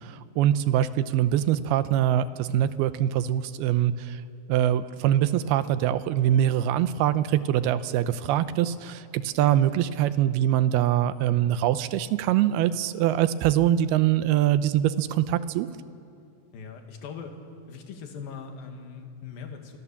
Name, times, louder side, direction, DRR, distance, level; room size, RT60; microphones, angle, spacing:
voice 1, 0.0-4.2 4.5-15.7, right 11 dB, 80° right, 13 dB, 2.6 m, -23 dB
voice 2, 9.4-9.7 16.5-17.4 17.7-19.8, left 6 dB, 65° left, 4 dB, 3.7 m, -40 dB
28.0 x 25.0 x 7.2 m, 2.6 s
omnidirectional pair, 4.7 m